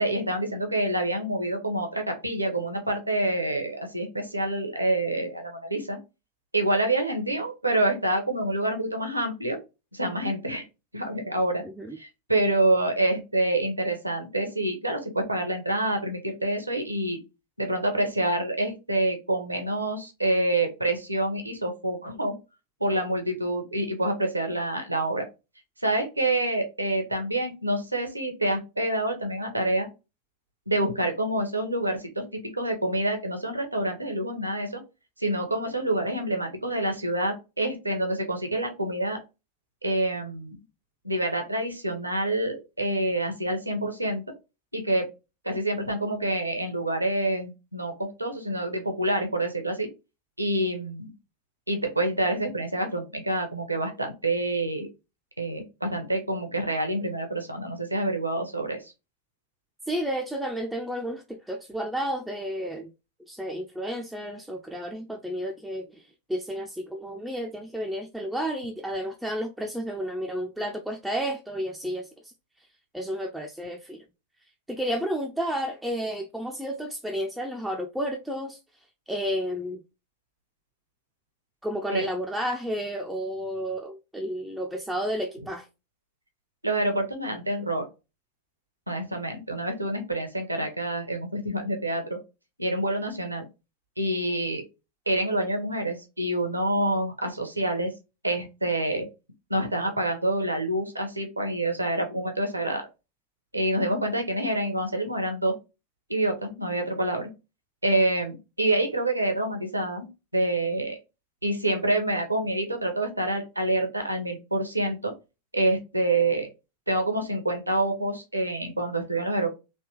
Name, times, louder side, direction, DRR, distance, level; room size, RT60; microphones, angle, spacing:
voice 1, 0.0-6.0 6.5-9.6 9.9-10.6 10.9-11.6 12.0-17.2 17.6-22.3 22.8-25.3 25.8-29.9 30.7-32.2 32.5-34.8 35.2-39.2 39.8-40.6 41.0-44.2 44.7-45.1 45.4-49.9 50.4-51.1 51.7-54.9 55.4-58.9 81.9-82.1 86.6-87.9 88.9-92.2 92.6-93.4 94.0-94.6 95.1-97.9 98.2-99.1 99.5-102.9 103.5-105.5 106.1-107.3 107.8-111.0 111.4-115.1 115.5-116.5 116.9-119.5, right 1 dB, 85° right, 0.9 m, -27 dB
voice 2, 11.6-12.0 59.9-62.9 63.3-72.3 72.9-74.0 74.7-78.6 79.1-79.8 81.6-85.7, equal, 5° right, 0.4 m, -31 dB
3.3 x 2.9 x 2.9 m
figure-of-eight pair, 90°, 0 cm